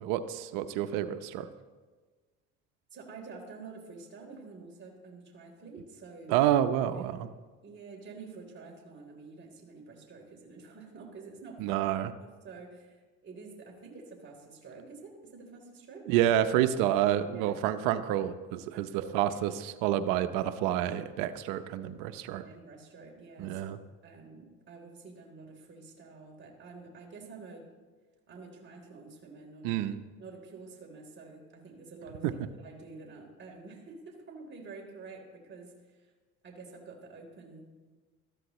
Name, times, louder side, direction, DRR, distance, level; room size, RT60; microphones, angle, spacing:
voice 1, 0.0-1.5 6.3-7.3 11.6-12.1 16.1-18.9 19.1-22.4 23.4-23.8 29.6-30.0 32.2-32.3, right 11 dB, 90° right, 10 dB, 0.8 m, -28 dB
voice 2, 2.9-6.4 6.9-7.2 7.6-11.9 12.2-16.3 16.7-17.0 17.3-17.6 18.7-19.4 22.4-23.6 24.0-27.7 28.3-29.9 30.2-36.1 36.4-37.8, right 4 dB, 40° right, -1 dB, 3.6 m, -48 dB
19.5 x 14.0 x 3.1 m, 1.4 s
cardioid pair, 100°, 31 cm